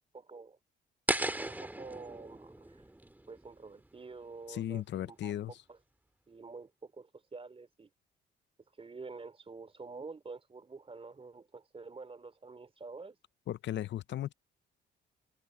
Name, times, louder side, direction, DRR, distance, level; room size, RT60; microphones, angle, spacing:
voice 1, 0.1-0.6 1.4-2.8 3.3-5.8 6.3-7.9 8.8-13.2, right 4 dB, 30° right, 3.2 m, -48 dB
sound 1, 1.1-4.1, right 1 dB, 10° right, 2.2 m, -37 dB
voice 2, 4.5-5.5 13.5-14.3, left 12 dB, 65° left, 0.7 m, -36 dB
cardioid pair, 90°, 20 cm